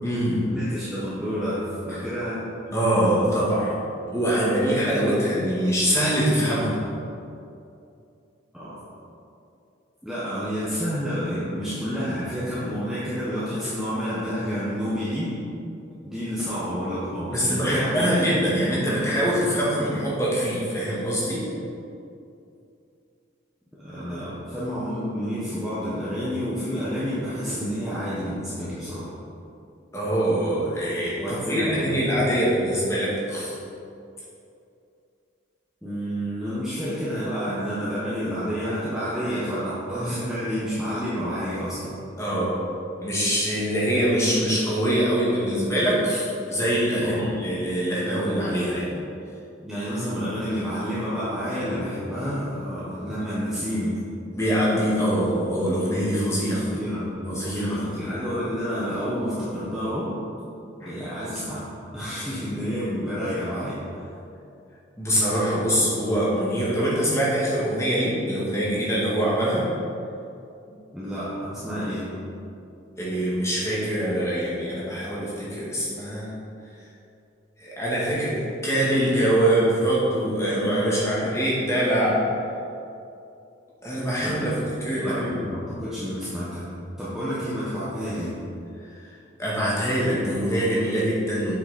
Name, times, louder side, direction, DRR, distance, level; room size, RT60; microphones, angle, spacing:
voice 1, 0.0-0.5 1.9-2.0 2.7-3.7 4.1-6.8 17.3-21.4 29.9-33.6 42.2-42.5 43.0-48.9 54.3-56.6 57.2-57.8 60.8-61.0 65.0-69.7 73.0-76.3 77.6-82.2 83.8-85.4 89.1-91.6, right 1 dB, 15° left, -7 dB, 1.8 m, -24 dB
voice 2, 0.5-2.4 8.5-8.8 10.0-15.4 16.0-18.3 23.8-29.1 31.2-31.9 35.8-42.0 47.0-47.3 49.6-54.0 56.3-60.1 60.8-61.7 61.9-64.1 70.9-72.1 84.2-84.6 85.0-86.7 87.0-88.4, equal, ahead, -11 dB, 1.2 m, -29 dB
8.1 x 6.0 x 4.2 m, 2.6 s
head